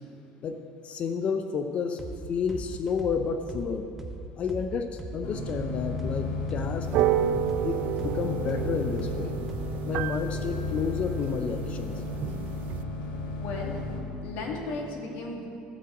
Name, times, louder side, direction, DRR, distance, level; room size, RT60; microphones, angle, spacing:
voice 1, 0.4-2.0 2.3-3.9 4.4-6.9 7.3-9.3 9.9-12.0, left 6 dB, 40° left, 7 dB, 0.6 m, -31 dB
sound 1, 2.0-2.2 2.5-6.2 6.5-9.9, right 2 dB, 10° right, 1.0 m, -39 dB
sound 2, 5.2-14.0, left 3 dB, 85° left, 1.9 m, -34 dB
sound 3, 6.8-12.8, right 11 dB, 60° right, 0.4 m, -31 dB
voice 2, 13.4-13.8 14.2-15.5, left 3 dB, 70° left, 0 dB, 2.3 m, -35 dB
15.0 x 5.8 x 7.9 m, 2.7 s
cardioid pair, 130°, 3 cm